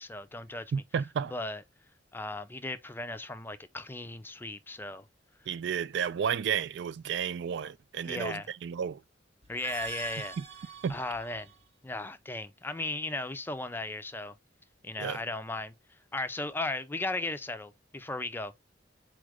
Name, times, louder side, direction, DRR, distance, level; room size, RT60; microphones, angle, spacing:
voice 1, 0.0-0.7 1.3-1.6 2.1-5.0 8.0-8.5 9.5-10.4 10.9-11.5 11.8-14.4 14.8-15.7 16.1-18.5, left 2 dB, 10° left, 0.5 m, -36 dB
voice 2, 0.7-1.3 5.5-9.0 10.4-10.5 10.8-10.9 15.0-15.2, right 7 dB, 65° right, 0.3 m, -32 dB
sound 1, 9.4-11.7, right 4 dB, 35° right, 0.8 m, -42 dB
4.2 x 2.5 x 4.7 m
head